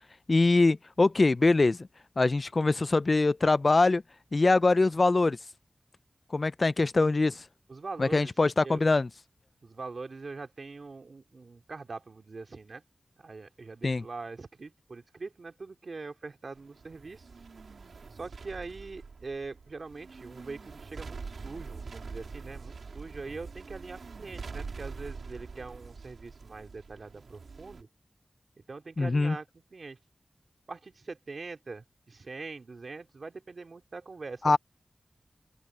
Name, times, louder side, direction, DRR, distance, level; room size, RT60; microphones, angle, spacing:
voice 1, 0.3-1.8 2.2-4.0 4.3-5.4 6.3-7.4 8.0-9.1 13.8-14.0 29.0-29.4 34.4-34.6, left 3 dB, 50° left, 0.4 m, -23 dB
voice 2, 7.7-8.3 8.6-8.8 9.6-12.8 13.2-17.3 18.1-27.9 28.7-30.0 30.7-34.6, right 3 dB, 65° right, 2.6 m, -43 dB
sound 1, 16.6-27.8, right 4 dB, 90° right, 3.7 m, -44 dB
open air
wide cardioid pair, 75°, 0 cm